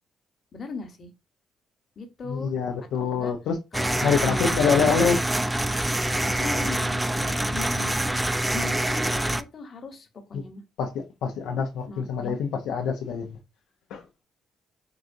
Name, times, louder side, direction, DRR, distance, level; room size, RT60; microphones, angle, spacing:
voice 1, 0.5-1.1 2.0-2.5 2.9-3.3 3.7-5.1 6.2-8.0 8.5-10.6 11.9-12.4, left 3 dB, 50° left, 1.1 m, -38 dB
voice 2, 2.3-3.6 4.0-5.2 10.8-13.4 13.9-14.0, left 6 dB, 75° left, 0.6 m, -25 dB
sound 1, 3.7-9.4, right 1 dB, 10° right, 0.4 m, -25 dB
4.7 x 2.5 x 2.6 m
supercardioid pair, 60°, 0 cm